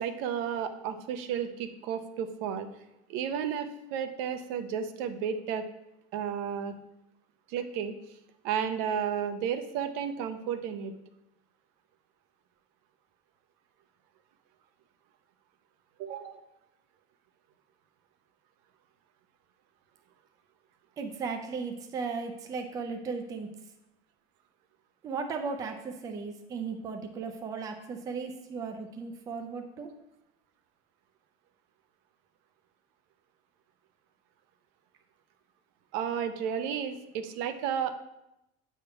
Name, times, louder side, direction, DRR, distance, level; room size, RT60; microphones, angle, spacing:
voice 1, 0.0-2.7 3.1-5.6 6.1-6.7 7.5-7.9 8.4-10.9 16.0-16.4 35.9-37.9, right 8 dB, 65° right, 9 dB, 0.7 m, -32 dB
voice 2, 21.0-23.5 25.0-29.9, right 5 dB, 20° right, 5 dB, 0.5 m, -36 dB
8.2 x 3.6 x 5.6 m, 0.86 s
cardioid pair, 180°, 18 cm